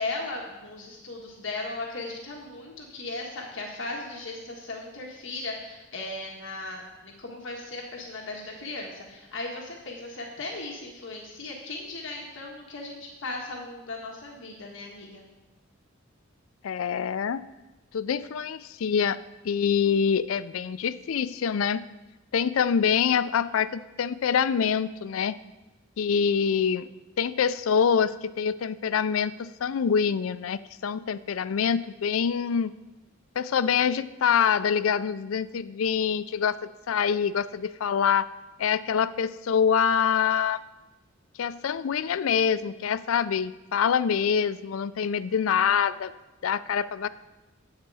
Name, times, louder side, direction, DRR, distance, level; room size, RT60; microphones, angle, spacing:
voice 1, 0.0-15.2, left 2 dB, 65° left, 0 dB, 1.4 m, -37 dB
voice 2, 16.6-17.4 17.9-19.2 19.4-21.9 22.3-25.4 26.0-26.9 27.2-32.7 33.4-38.3 38.6-40.6 41.4-46.1 46.4-47.1, left 7 dB, 85° left, 16 dB, 0.4 m, -25 dB
10.5 x 8.4 x 4.8 m, 1.1 s
head